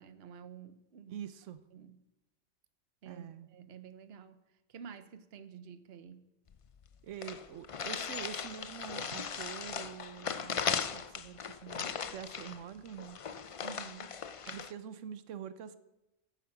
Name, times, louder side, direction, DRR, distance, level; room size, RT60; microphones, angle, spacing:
voice 1, 0.0-1.2 1.7-2.0 3.0-4.4 4.7-6.3 13.6-14.2, right 7 dB, 60° right, 11 dB, 1.0 m, -50 dB
voice 2, 1.1-1.6 3.0-3.5 7.0-13.2 14.5-15.8, right 8 dB, 90° right, 12 dB, 1.1 m, -45 dB
sound 1, 6.5-6.6 6.8-6.9 7.2-14.7, left 6 dB, 55° left, 0.3 m, -38 dB
15.0 x 8.4 x 5.9 m, 0.96 s
omnidirectional pair, 1.2 m